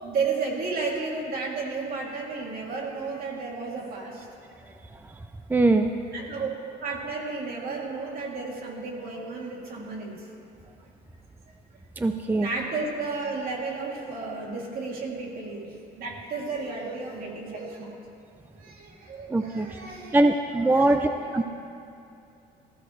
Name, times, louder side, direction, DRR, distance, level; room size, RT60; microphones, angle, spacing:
voice 1, 0.0-4.3 6.1-6.5 6.8-10.2 12.3-18.0 18.6-21.0 21.2-21.4, right 4 dB, 60° right, -2 dB, 3.0 m, -33 dB
voice 2, 5.5-5.9 12.0-12.5 19.3-19.7 20.1-21.1 21.3-21.4, right 2 dB, 10° right, 6 dB, 0.5 m, -21 dB
19.0 x 15.0 x 3.3 m, 2.6 s
cardioid pair, 110°, 17 cm